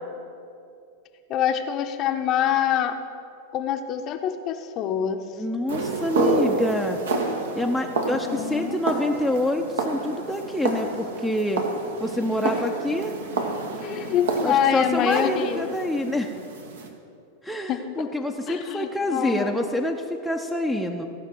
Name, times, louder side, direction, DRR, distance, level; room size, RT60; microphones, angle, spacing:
voice 1, 1.3-3.0 3.5-5.2 8.0-8.8 12.4-12.6 13.8-15.7 17.7-18.1 18.5-19.7, left 9 dB, 35° left, 7 dB, 0.7 m, -25 dB
voice 2, 5.4-7.0 7.5-11.6 12.0-13.1 14.4-16.3 17.4-21.1, left 1 dB, ahead, 1 dB, 0.6 m, -26 dB
sound 1, 5.7-16.9, right 3 dB, 65° right, 1.3 m, -29 dB
15.5 x 5.8 x 7.6 m, 2.6 s
figure-of-eight pair, 90°, 0 cm